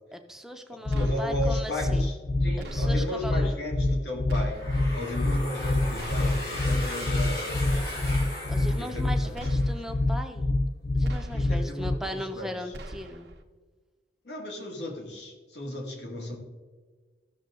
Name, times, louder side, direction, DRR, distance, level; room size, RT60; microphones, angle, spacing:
voice 1, 0.1-2.1 2.7-3.5 8.5-10.5 10.9-13.3, equal, 5° right, 5 dB, 0.7 m, -38 dB
voice 2, 0.9-2.1 2.4-4.6 4.9-7.9 8.7-9.7 11.3-12.5 14.2-16.4, left 1 dB, 75° left, 0 dB, 2.2 m, -35 dB
sound 1, 0.9-12.0, left 2 dB, 30° left, 0.3 m, -26 dB
sound 2, 0.9-1.6 2.6-3.3 4.3-5.0 6.0-6.7 7.7-8.4 9.3-10.0 11.0-11.7 12.7-13.4, right 1 dB, 75° right, 0.9 m, -43 dB
sound 3, 4.6-9.5, left 1 dB, 60° left, 2.6 m, -37 dB
14.0 x 6.5 x 3.8 m, 1.4 s
head